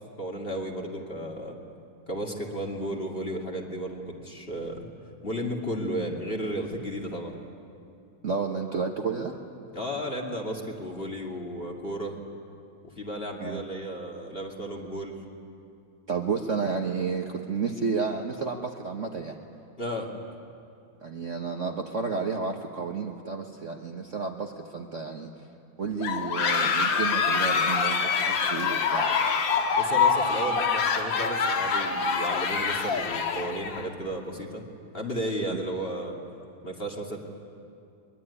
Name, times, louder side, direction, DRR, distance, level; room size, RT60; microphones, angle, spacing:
voice 1, 0.2-1.5 2.1-4.9 5.2-7.3 9.7-12.2 13.0-15.2 19.8-20.1 29.8-34.6 34.9-36.2 36.6-37.2, equal, 30° left, 0 dB, 2.5 m, -33 dB
voice 2, 8.2-9.4 13.4-13.6 16.1-19.4 21.0-25.3 25.8-29.2, right 5 dB, 45° right, 2 dB, 1.2 m, -31 dB
sound 1, 26.0-33.9, left 5 dB, 65° left, 2.1 m, -25 dB
23.0 x 22.0 x 9.8 m, 2.6 s
omnidirectional pair, 2.2 m